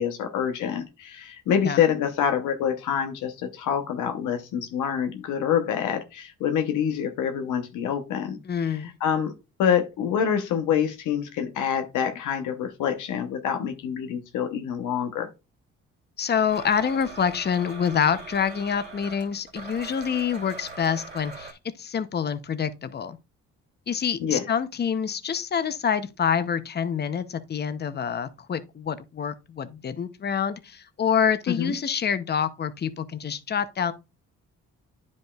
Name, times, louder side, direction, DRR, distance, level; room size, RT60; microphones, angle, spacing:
voice 1, 0.0-8.4 8.7-9.3 9.6-15.3 24.2-24.4 31.5-31.7, left 8 dB, 85° left, 0.9 m, -26 dB
voice 2, 8.5-8.9 16.2-23.2 23.9-33.9, left 7 dB, 35° left, 0.7 m, -27 dB
Domestic sounds home sounds, 16.5-21.5, right 3 dB, 35° right, 2.1 m, -41 dB
9.9 x 5.3 x 2.4 m
cardioid pair, 90°, 30 cm